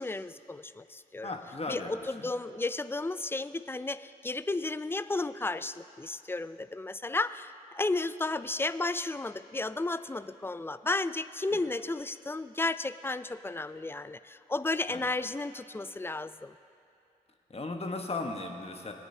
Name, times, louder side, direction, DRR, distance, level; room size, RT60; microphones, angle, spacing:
voice 1, 0.0-1.3 1.7-16.5, left 2 dB, 15° left, 14 dB, 0.4 m, -33 dB
voice 2, 1.2-1.9 2.2-2.3 14.9-15.0 17.5-18.9, left 3 dB, 35° left, 3 dB, 1.2 m, -36 dB
18.5 x 9.1 x 2.8 m, 2.6 s
supercardioid pair, 40°, 17 cm